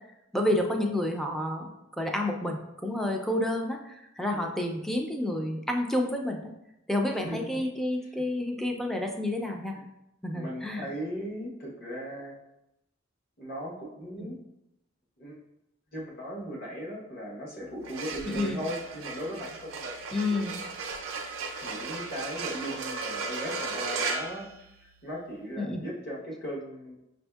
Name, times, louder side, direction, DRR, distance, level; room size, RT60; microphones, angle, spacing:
voice 1, 0.3-1.7 2.0-6.5 6.9-9.8 10.2-10.9 14.2-14.3 18.3-18.6 20.1-20.6 25.6-25.8, left 1 dB, ahead, 2 dB, 0.3 m, -29 dB
voice 2, 7.1-7.5 8.0-8.2 9.7-9.8 10.3-12.3 13.4-14.3 15.2-15.3 15.9-20.0 20.2-20.5 21.6-27.0, equal, 50° left, -3 dB, 1.0 m, -38 dB
sound 1, 17.7-25.2, right 4 dB, 85° right, 0.5 m, -36 dB
6.2 x 2.6 x 2.3 m, 0.87 s
head